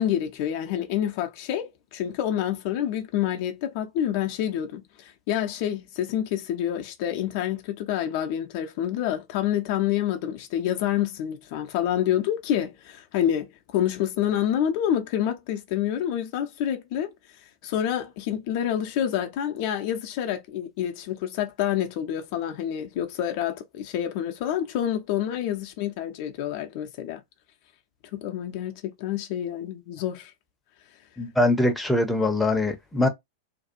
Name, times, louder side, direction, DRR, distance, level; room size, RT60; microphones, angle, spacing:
voice 1, 0.0-17.1 17.6-27.2 28.1-30.3, left 10 dB, 50° left, 0.5 m, -28 dB
voice 2, 31.2-33.1, left 1 dB, 5° left, 0.6 m, -22 dB
2.6 x 2.3 x 2.6 m
figure-of-eight pair, 90°, 0 cm